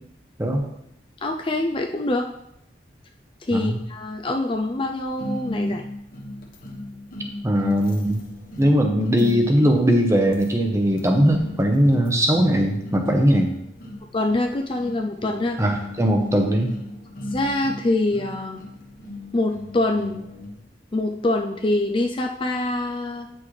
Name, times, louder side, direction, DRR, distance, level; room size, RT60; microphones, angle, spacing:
voice 1, 1.2-2.3 3.4-5.8 14.1-15.6 17.3-18.6 19.3-20.2 20.9-23.3, left 2 dB, 25° left, 3 dB, 0.4 m, -24 dB
sound 1, 5.2-20.6, left 1 dB, 50° left, 1.1 m, -36 dB
voice 2, 7.4-8.2 8.6-13.5 15.6-16.7, equal, 15° right, 3 dB, 0.9 m, -20 dB
9.0 x 6.2 x 3.2 m, 0.80 s
head